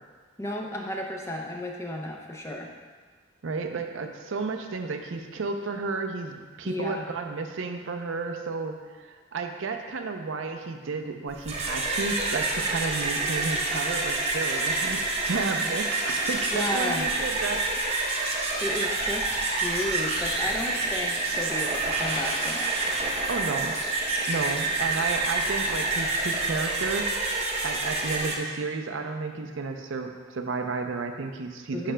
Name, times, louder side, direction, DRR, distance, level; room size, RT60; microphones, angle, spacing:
voice 1, 0.4-2.7 6.6-7.0 16.5-17.1 18.6-22.8 31.7-31.9, left 1 dB, 15° left, 0 dB, 0.5 m, -33 dB
voice 2, 3.4-17.7 23.3-23.7 24.3-27.4 27.6-31.9, right 4 dB, 70° right, 5 dB, 0.5 m, -32 dB
sound 1, 11.3-28.3, right 2 dB, 30° right, 0.8 m, -28 dB
9.8 x 5.7 x 2.2 m, 1.5 s
head